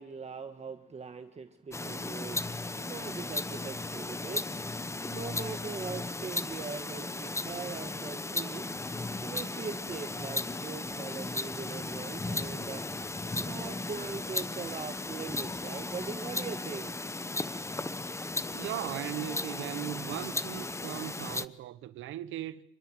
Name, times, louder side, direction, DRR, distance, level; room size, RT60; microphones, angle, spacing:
voice 1, 0.0-8.9 9.2-12.8 13.4-16.9, right 5 dB, 35° right, 1.6 m, -41 dB
sound 1, 1.7-21.5, left 2 dB, 15° left, 0.9 m, -36 dB
voice 2, 18.5-22.6, right 13 dB, 85° right, 1.0 m, -38 dB
27.0 x 21.0 x 7.8 m
cardioid pair, 90°, 20 cm